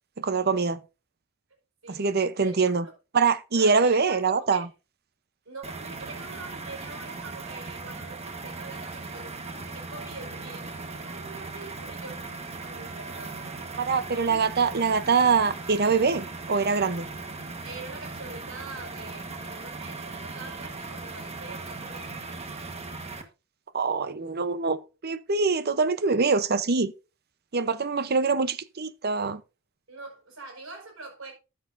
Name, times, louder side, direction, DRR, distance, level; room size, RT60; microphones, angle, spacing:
voice 1, 0.2-0.8 1.9-2.8 3.1-4.7 13.8-17.1 23.7-26.9 27.5-29.4, right 4 dB, 50° right, 0.8 m, -24 dB
voice 2, 2.4-2.9 3.5-4.7 5.4-12.3 12.6-13.7 14.3-14.4 17.6-22.2 29.9-31.3, right 3 dB, 85° right, 4.8 m, -44 dB
sound 1, 5.6-23.2, right 3 dB, 30° right, 1.3 m, -38 dB
13.0 x 8.5 x 2.6 m
head